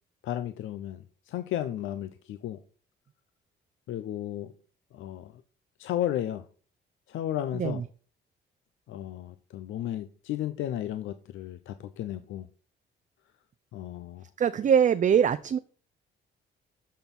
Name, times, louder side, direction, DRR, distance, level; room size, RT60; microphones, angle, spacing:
voice 1, 0.2-2.6 3.9-4.5 4.9-5.3 5.8-6.5 7.1-7.8 8.9-12.5 13.7-14.2, left 12 dB, 80° left, 0.6 m, -34 dB
voice 2, 7.5-7.8 14.4-15.6, right 8 dB, 40° right, 0.5 m, -23 dB
13.0 x 4.5 x 5.4 m
cardioid pair, 90°, 20 cm